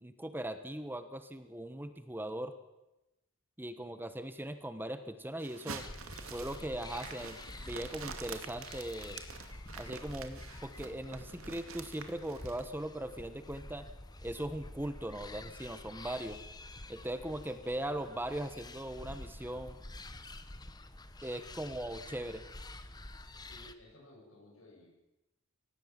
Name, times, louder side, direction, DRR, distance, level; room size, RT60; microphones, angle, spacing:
voice 1, 0.0-2.5 3.6-5.9 6.3-7.4 7.6-9.2 9.8-13.9 14.2-16.4 16.9-19.8 21.2-22.4, right 1 dB, 10° right, 10 dB, 1.1 m, -39 dB
sound 1, 5.4-12.7, right 5 dB, 75° right, 2.3 m, -47 dB
sound 2, 5.7-23.7, left 2 dB, 20° left, 1.1 m, -48 dB
voice 2, 23.4-24.9, left 1 dB, 75° left, -3 dB, 7.8 m, -56 dB
24.0 x 18.5 x 7.5 m, 0.99 s
head